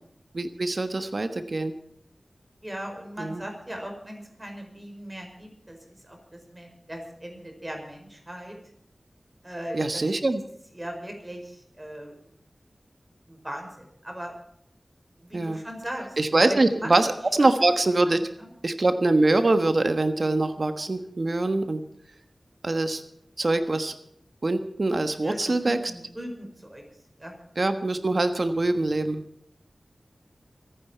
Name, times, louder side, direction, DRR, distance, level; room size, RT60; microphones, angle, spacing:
voice 1, 0.3-1.7 3.2-3.4 9.7-10.4 15.3-15.6 16.2-18.2 18.6-21.8 22.6-23.0 23.4-23.9 24.4-25.8 27.6-29.2, right 2 dB, 55° right, 8 dB, 1.3 m, -24 dB
voice 2, 2.6-5.8 6.0-8.6 9.4-10.0 10.7-12.1 13.3-14.3 15.2-16.9 17.4-17.5 18.1-18.5 25.2-26.8 27.2-27.3, equal, 20° right, 2 dB, 5.0 m, -38 dB
25.5 x 9.8 x 4.5 m, 0.73 s
wide cardioid pair, 65°, 0 cm